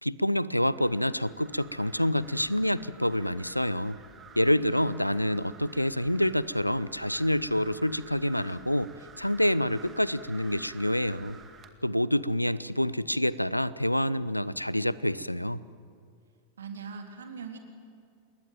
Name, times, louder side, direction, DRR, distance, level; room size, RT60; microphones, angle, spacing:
voice 1, 0.0-4.0 4.4-8.9 9.2-11.4 11.8-15.6, equal, 90° left, 19 dB, 0.7 m, -27 dB
sound 1, 0.7-11.7, right 5 dB, 20° right, 2.2 m, -52 dB
voice 2, 16.6-17.6, right 6 dB, 65° right, 4 dB, 3.5 m, -41 dB
28.0 x 21.0 x 9.1 m, 2.2 s
figure-of-eight pair, 90°, 0 cm